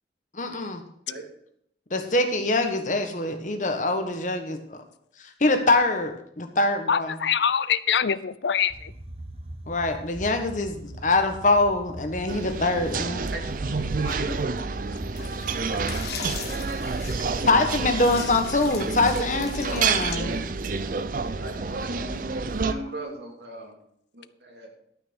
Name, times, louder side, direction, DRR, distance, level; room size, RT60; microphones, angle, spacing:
voice 1, 0.3-0.8 1.9-4.8 5.2-7.1 9.7-13.3 17.4-20.4, left 2 dB, 45° left, 6 dB, 1.4 m, -24 dB
voice 2, 6.9-8.9, left 7 dB, 80° left, 17 dB, 0.5 m, -24 dB
sound 1, 8.7-16.5, right 1 dB, 35° right, 1.1 m, -40 dB
sound 2, 12.3-22.7, right 4 dB, 50° right, 0.6 m, -29 dB
voice 3, 13.2-14.4 21.4-23.7 24.1-24.7, right 1 dB, 75° right, 1 dB, 2.8 m, -38 dB
sound 3, 15.1-20.1, left 6 dB, 65° left, 1.5 m, -39 dB
12.5 x 5.9 x 6.3 m, 0.70 s
head